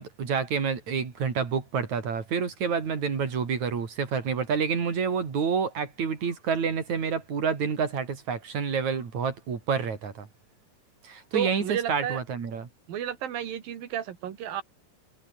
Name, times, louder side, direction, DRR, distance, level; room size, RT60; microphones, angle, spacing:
voice 1, 0.0-10.3 11.0-12.7, right 6 dB, 55° right, 4.6 m, -28 dB
voice 2, 11.3-12.2 12.9-14.6, right 9 dB, 90° right, 4.0 m, -32 dB
omnidirectional pair, 4.0 m